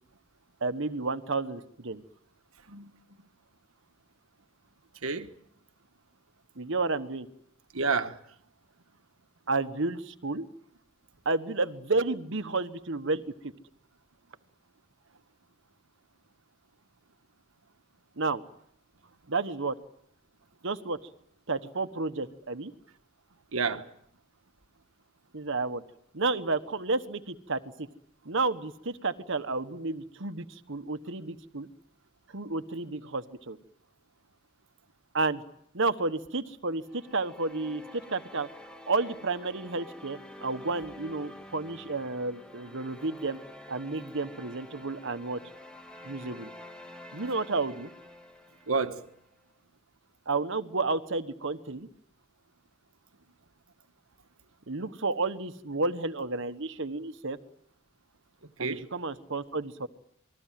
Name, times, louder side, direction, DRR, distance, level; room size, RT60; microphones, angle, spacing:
voice 1, 0.6-2.0 6.6-7.3 9.5-10.5 11.2-13.5 18.2-18.4 19.3-19.7 20.6-21.0 21.5-22.7 25.3-25.8 26.1-27.9 28.2-31.7 32.3-33.6 35.1-35.4 35.7-38.5 38.9-43.4 43.7-45.4 46.0-46.5 47.1-47.9 50.3-51.9 54.7-57.4 58.6-59.9, right 3 dB, 65° right, 1.3 m, -31 dB
voice 2, 5.0-5.3 7.7-8.2 23.5-23.9 48.7-49.1 58.6-58.9, right 4 dB, 80° right, 1.5 m, -29 dB
sound 1, 36.8-49.2, left 1 dB, 5° left, 2.6 m, -48 dB
28.0 x 21.0 x 7.6 m
head